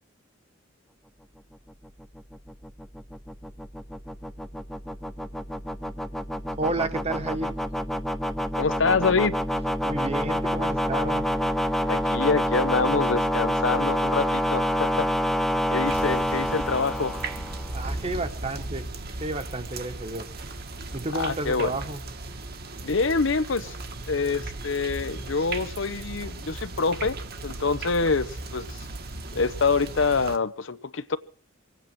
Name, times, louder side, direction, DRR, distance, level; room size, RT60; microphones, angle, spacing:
sound 1, 1.7-17.9, equal, ahead, 0.8 m, -28 dB
voice 1, 6.6-7.5 9.8-11.3 17.7-18.9 19.2-20.3 20.9-22.0, right 2 dB, 30° right, 1.3 m, -31 dB
voice 2, 8.6-9.4 11.9-15.1 15.7-17.2 21.1-21.7 22.8-23.7 24.1-27.2 27.4-28.8 29.3-31.2, left 4 dB, 65° left, 0.8 m, -26 dB
sound 2, 15.9-30.4, right 2 dB, 50° right, 1.5 m, -37 dB
24.0 x 9.2 x 6.1 m
head